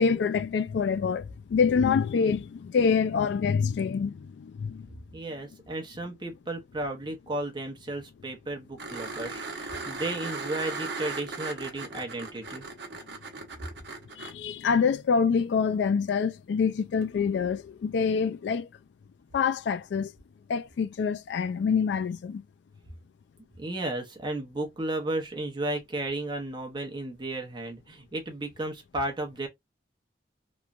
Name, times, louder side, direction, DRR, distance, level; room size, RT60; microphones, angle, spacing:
voice 1, 0.0-4.9 14.2-18.7 19.3-20.1 20.5-22.4, left 6 dB, 70° left, 0.3 m, -26 dB
voice 2, 5.1-12.6 23.6-29.5, right 2 dB, 25° right, 0.7 m, -34 dB
sound 1, 8.8-14.3 17.0-17.1, right 3 dB, 65° right, 0.8 m, -37 dB
3.0 x 2.1 x 2.4 m
head